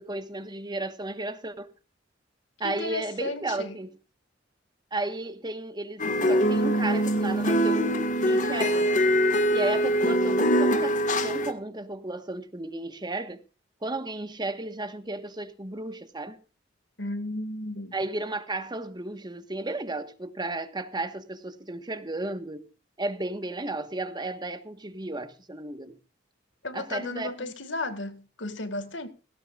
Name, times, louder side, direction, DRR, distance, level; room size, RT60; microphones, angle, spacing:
voice 1, 0.0-1.7 2.6-4.0 4.9-8.0 8.2-8.9 9.5-13.4 13.8-16.4 17.9-22.7 23.0-26.0 26.7-27.5, right 2 dB, 25° right, 1.3 m, -34 dB
voice 2, 2.6-3.8 17.0-17.9 26.6-29.1, left 2 dB, 75° left, 1.9 m, -34 dB
sound 1, 6.0-11.5, equal, 45° left, 1.7 m, -23 dB
17.5 x 17.0 x 2.4 m
head